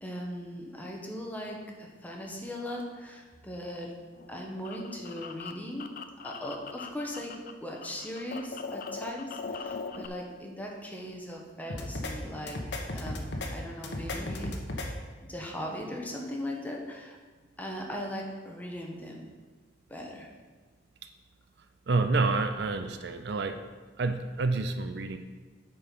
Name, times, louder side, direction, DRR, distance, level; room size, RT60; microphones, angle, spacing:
voice 1, 0.0-3.9 4.3-5.9 6.2-12.6 12.9-15.0 15.2-17.2 17.6-19.2 19.9-20.3, equal, 10° left, 0 dB, 1.1 m, -39 dB
sound 1, 4.1-7.5 7.8-10.1, left 4 dB, 45° left, 0.4 m, -40 dB
sound 2, 11.7-12.1 12.5-13.5 13.8-14.9, left 1 dB, 65° left, 1.0 m, -34 dB
voice 2, 21.9-23.6 24.0-25.2, right 3 dB, 60° right, 8 dB, 0.5 m, -28 dB
8.8 x 4.7 x 5.2 m, 1.4 s
head